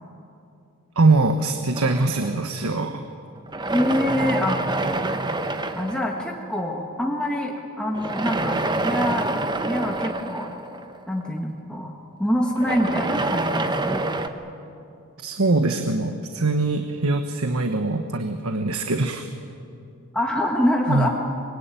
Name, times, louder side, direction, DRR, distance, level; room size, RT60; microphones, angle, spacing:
voice 1, 1.0-3.0 15.2-19.3 20.9-21.1, right 3 dB, 80° right, 6 dB, 1.3 m, -22 dB
sound 1, 1.8-3.0 3.5-6.6 7.9-11.4 12.5-14.3, right 2 dB, 20° right, 1.1 m, -27 dB
voice 2, 3.7-4.6 5.7-9.3 9.6-10.5 11.1-11.9 12.2-14.0 20.1-21.1, equal, 5° left, -1 dB, 1.7 m, -25 dB
25.5 x 22.5 x 9.2 m, 2.6 s
head